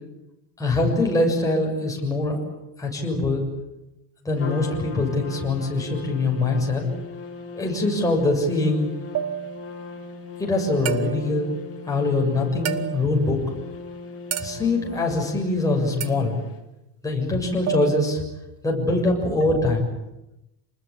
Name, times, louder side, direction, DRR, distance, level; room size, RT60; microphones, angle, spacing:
voice 1, 0.6-2.4 2.8-3.4 4.2-6.8 7.5-8.9 10.4-11.5 11.9-13.4 14.4-16.4 17.0-18.2 18.6-19.9, left 2 dB, 10° left, -1 dB, 7.0 m, -23 dB
Trumpet, 4.4-16.5, left 4 dB, 30° left, 3.8 m, -39 dB
sound 1, 9.1-9.7 10.9-11.4 12.6-13.2 14.3-14.8 16.0-16.3 17.7-18.4 19.4-19.8, right 10 dB, 35° right, 1.3 m, -30 dB
28.5 x 20.5 x 8.8 m, 0.95 s
cardioid pair, 165°, 42 cm